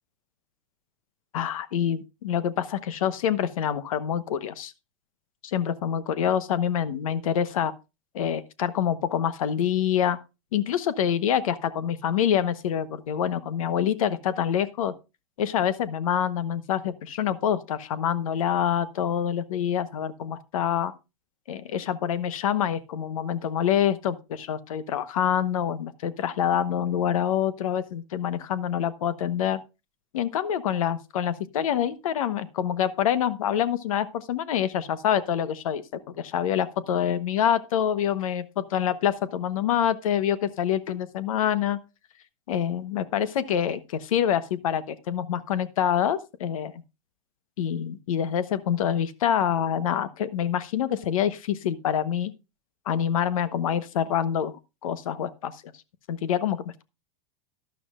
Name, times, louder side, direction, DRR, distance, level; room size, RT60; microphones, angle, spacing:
voice 1, 1.3-4.7 5.4-7.7 8.1-10.2 10.5-14.9 15.4-20.9 21.5-29.6 30.1-35.8 36.2-41.8 42.5-46.7 47.6-52.3 52.9-54.5 54.8-55.7 56.1-56.8, left 9 dB, 80° left, 15 dB, 1.0 m, -26 dB
12.0 x 11.5 x 2.4 m, 0.27 s
supercardioid pair, 125°, 17 cm